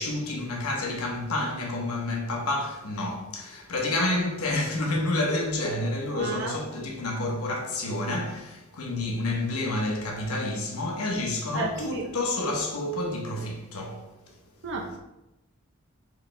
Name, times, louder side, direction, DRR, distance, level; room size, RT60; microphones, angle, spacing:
voice 1, 0.0-14.0, left 2 dB, 90° left, 0.9 m, -29 dB
voice 2, 6.1-6.6 11.5-12.0 14.6-15.0, right 3 dB, 55° right, 0.6 m, -32 dB
4.8 x 3.2 x 3.2 m
head